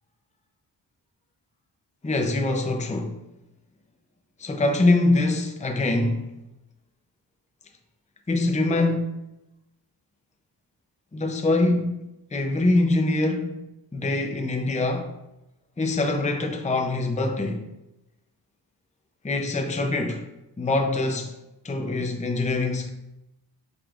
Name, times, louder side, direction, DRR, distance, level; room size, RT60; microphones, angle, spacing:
voice 1, 2.0-3.2 4.4-6.4 8.3-9.1 11.1-12.0 12.3-13.6 13.9-15.1 15.8-17.7 19.2-20.3 20.6-21.4 21.6-22.9, left 2 dB, 15° left, 0.6 m, -24 dB
8.7 x 5.2 x 2.4 m
wide cardioid pair, 105°, 44 cm